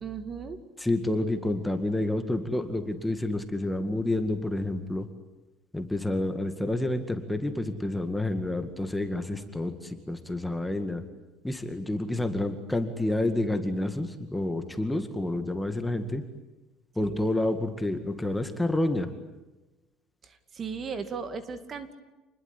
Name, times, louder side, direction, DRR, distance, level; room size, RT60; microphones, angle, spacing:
voice 1, 0.0-0.6 17.0-17.2 20.2-21.9, right 5 dB, 30° right, 10 dB, 2.3 m, -36 dB
voice 2, 0.8-5.1 5.7-11.0 11.4-16.2 17.0-19.1, left 1 dB, 5° left, 7 dB, 2.1 m, -29 dB
28.5 x 21.0 x 9.9 m, 1.1 s
cardioid pair, 145°, 0 cm